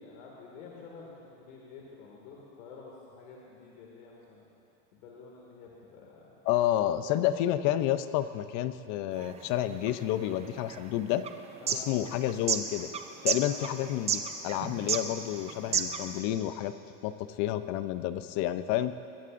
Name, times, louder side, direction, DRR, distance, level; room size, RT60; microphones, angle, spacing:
voice 1, 0.0-4.5 4.9-6.3 6.9-7.0 7.4-7.7 11.6-11.9 13.4-13.6, left 4 dB, 80° left, -3 dB, 2.2 m, -49 dB
voice 2, 6.5-11.2 11.7-12.9 13.2-16.7 17.0-18.9, left 13 dB, 50° left, 12 dB, 0.6 m, -30 dB
sound 1, 9.1-16.2, right 7 dB, 15° right, 0.4 m, -33 dB
21.0 x 14.5 x 2.6 m, 2.7 s
supercardioid pair, 145°, 39 cm